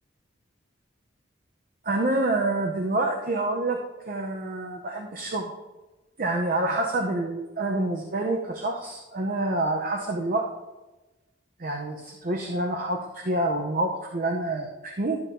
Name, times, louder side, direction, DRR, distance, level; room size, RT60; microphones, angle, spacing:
voice 1, 1.8-3.8 4.1-5.5 6.2-10.4 11.6-15.2, right 2 dB, 45° right, 2 dB, 0.7 m, -27 dB
12.0 x 7.4 x 2.7 m, 1.1 s
head